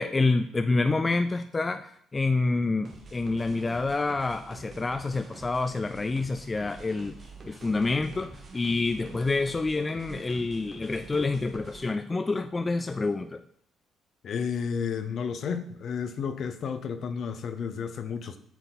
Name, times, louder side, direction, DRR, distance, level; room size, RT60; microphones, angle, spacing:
voice 1, 0.0-7.2 7.5-13.4, left 3 dB, 20° left, 9 dB, 0.3 m, -27 dB
sound 1, 2.8-11.9, right 3 dB, 40° right, 1.5 m, -46 dB
voice 2, 14.2-18.4, left 6 dB, 55° left, 10 dB, 0.7 m, -32 dB
7.9 x 4.7 x 4.0 m, 0.63 s
cardioid pair, 110°, 0 cm